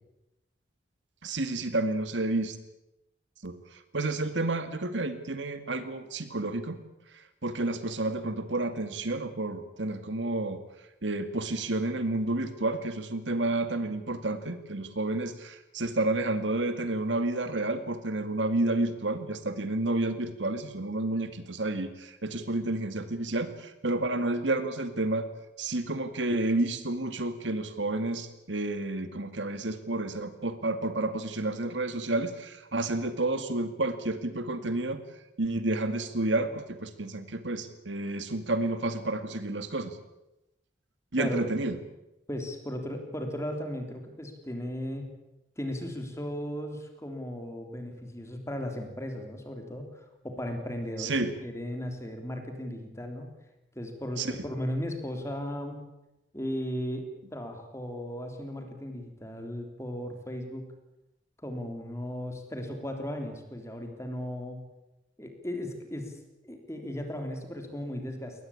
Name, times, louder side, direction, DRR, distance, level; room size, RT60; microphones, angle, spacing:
voice 1, 1.2-2.6 3.4-6.8 7.4-10.6 11.0-25.3 25.6-35.0 35.4-40.0 41.1-41.8 51.0-51.3 54.2-54.3, right 2 dB, 85° right, 10 dB, 2.2 m, -30 dB
voice 2, 42.3-45.1 45.6-51.2 51.4-53.4 53.7-55.9 56.3-57.1 57.3-60.7 61.4-64.6 65.2-68.5, equal, 15° left, 4 dB, 3.5 m, -36 dB
22.5 x 19.0 x 8.7 m, 0.92 s
head